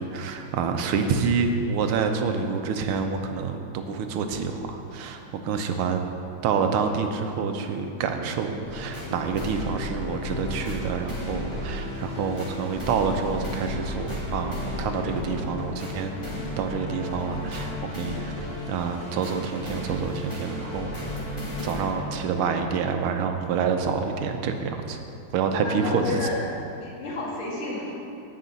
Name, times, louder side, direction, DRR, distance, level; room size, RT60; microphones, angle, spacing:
voice 1, 0.0-6.1 6.4-18.3 18.7-21.0 21.6-25.0 25.3-26.2, right 5 dB, 90° right, 6 dB, 1.6 m, -27 dB
sound 1, 8.6-23.2 23.7-23.8, left 1 dB, 15° left, 2.7 m, -34 dB
voice 2, 25.6-26.4 26.8-27.9, left 2 dB, 75° left, -4 dB, 2.7 m, -30 dB
17.0 x 6.0 x 4.0 m, 2.7 s
omnidirectional pair, 2.3 m